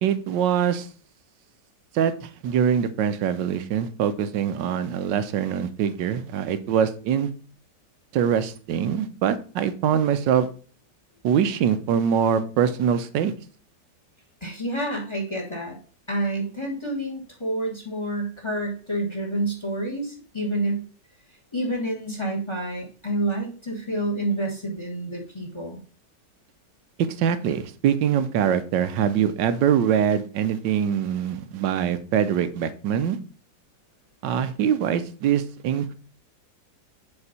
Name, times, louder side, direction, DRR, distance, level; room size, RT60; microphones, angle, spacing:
voice 1, 0.0-0.9 1.9-7.3 8.1-10.5 11.2-13.3 27.2-33.2 34.2-35.9, right 8 dB, 90° right, 11 dB, 1.4 m, -23 dB
voice 2, 14.4-15.8 16.1-20.8 21.5-25.8, right 1 dB, 15° left, 1 dB, 1.6 m, -28 dB
6.9 x 4.5 x 4.1 m, 0.40 s
omnidirectional pair, 1.9 m